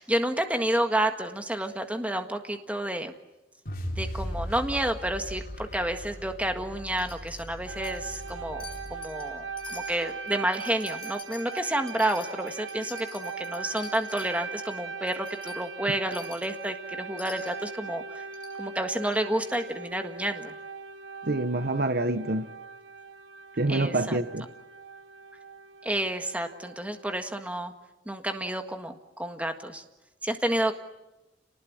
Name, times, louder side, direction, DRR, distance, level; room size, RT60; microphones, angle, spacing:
voice 1, 0.0-3.1 4.0-8.6 8.9-18.2 18.6-20.5 23.7-24.2 25.8-27.7 28.0-29.8 30.2-30.7, right 1 dB, 5° right, 1.6 m, -30 dB
sound 1, 3.7-9.8, equal, 50° left, 4.5 m, -38 dB
Wind chime, 7.0-7.5 7.8-8.3 8.6-9.2 9.6-14.3 14.7-14.8 15.1-15.6 16.1-16.5 17.2-17.6 18.3-18.5 19.1-19.2 19.5-19.6, left 6 dB, 30° left, 5.8 m, -47 dB
sound 2, 7.7-27.2, right 5 dB, 75° right, 1.3 m, -40 dB
voice 2, 21.2-22.5 23.6-24.5, right 2 dB, 55° right, 1.1 m, -26 dB
29.0 x 19.5 x 10.0 m
head